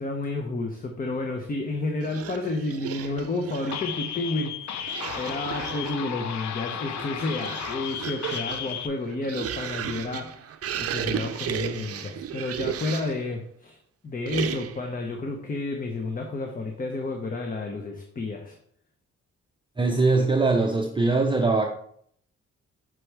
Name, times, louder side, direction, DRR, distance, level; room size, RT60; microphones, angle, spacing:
voice 1, 0.0-13.8 14.0-18.6, left 2 dB, 30° left, 3 dB, 0.9 m, -31 dB
sound 1, 2.0-3.9 4.8-6.1 6.8-13.3 14.3-14.9, right 9 dB, 55° right, 0.6 m, -34 dB
sound 2, 3.7-8.9, left 8 dB, 70° left, 0.7 m, -34 dB
voice 2, 19.8-21.7, right 3 dB, 15° right, 2 dB, 0.6 m, -22 dB
6.1 x 5.8 x 3.4 m, 0.64 s
cardioid pair, 95°, 29 cm